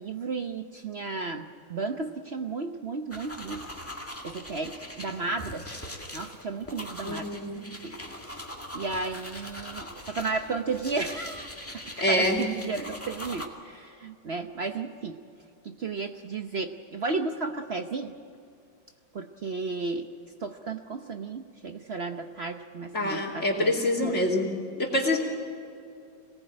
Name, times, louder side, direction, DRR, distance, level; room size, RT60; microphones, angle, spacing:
voice 1, 0.0-3.7 4.2-5.7 6.1-7.4 7.8-7.9 8.7-15.2 15.6-18.1 19.1-20.1 20.4-24.2, right 4 dB, 65° right, 6 dB, 0.6 m, -34 dB
sound 1, 3.1-13.5, left 1 dB, 5° left, 1.9 m, -41 dB
voice 2, 7.0-7.6 12.0-12.4 22.9-24.5 24.8-25.2, left 1 dB, 35° left, 0 dB, 3.0 m, -26 dB
26.0 x 18.5 x 8.8 m, 2.4 s
omnidirectional pair, 2.3 m